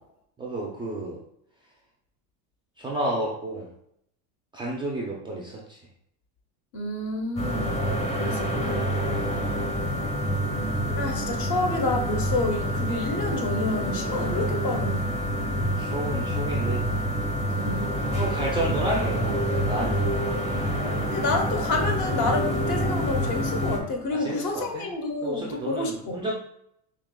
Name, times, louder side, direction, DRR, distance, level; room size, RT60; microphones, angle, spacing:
voice 1, 0.4-1.2 2.8-3.7 4.5-5.8 9.0-9.4 15.8-16.8 18.2-20.2 24.1-24.9 25.2-26.3, right 1 dB, 10° right, -4 dB, 0.3 m, -31 dB
voice 2, 6.7-7.8 8.2-8.8 11.0-15.1 17.6-17.9 21.1-26.3, left 2 dB, 50° left, 3 dB, 0.9 m, -29 dB
sound 1, 7.4-23.8, equal, 15° left, 0.7 m, -27 dB
4.9 x 2.9 x 2.2 m, 0.74 s
supercardioid pair, 120°, 45 cm